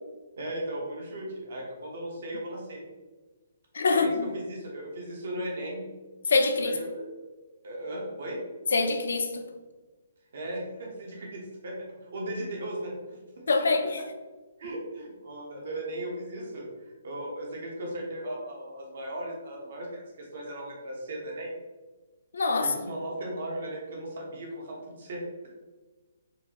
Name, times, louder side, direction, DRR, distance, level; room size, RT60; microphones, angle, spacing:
voice 1, 0.4-2.8 3.9-5.8 6.6-7.0 7.6-8.4 10.3-11.8 12.0-13.8 14.6-21.6 22.6-25.2, right 1 dB, 55° right, -2 dB, 1.1 m, -37 dB
voice 2, 3.7-4.3 6.3-6.8 8.7-9.4 13.5-14.0 22.3-22.7, left 3 dB, 75° left, 6 dB, 0.5 m, -24 dB
4.5 x 2.6 x 2.9 m, 1.3 s
hypercardioid pair, 170°, 0 cm